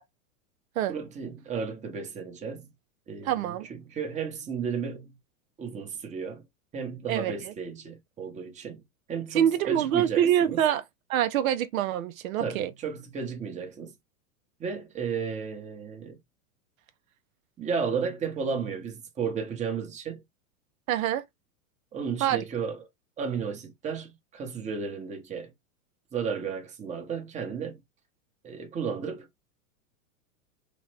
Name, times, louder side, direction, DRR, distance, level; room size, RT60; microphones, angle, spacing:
voice 1, 0.9-2.7 3.1-5.2 5.6-6.4 6.7-8.8 9.1-10.6 12.4-13.9 14.6-16.2 17.6-20.2 21.9-22.8 23.2-25.5 26.1-27.8 28.4-29.3, right 6 dB, 15° right, 0.7 m, -33 dB
voice 2, 3.2-3.7 7.1-7.5 9.3-10.8 11.1-12.7 20.9-21.2 22.2-22.4, right 10 dB, 80° right, 0.6 m, -25 dB
3.0 x 2.1 x 3.1 m
hypercardioid pair, 120°, 42 cm